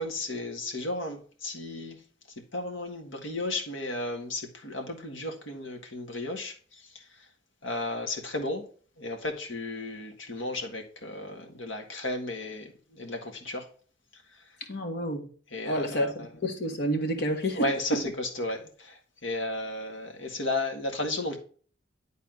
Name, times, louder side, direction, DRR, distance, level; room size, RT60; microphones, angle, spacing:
voice 1, 0.0-2.0 2.5-7.3 7.6-8.7 9.0-13.7 14.1-14.4 15.5-16.3 17.5-21.4, left 2 dB, 90° left, 1.8 m, -34 dB
voice 2, 14.7-15.3 15.6-18.0, equal, 55° left, 1.5 m, -29 dB
10.5 x 4.1 x 3.8 m
head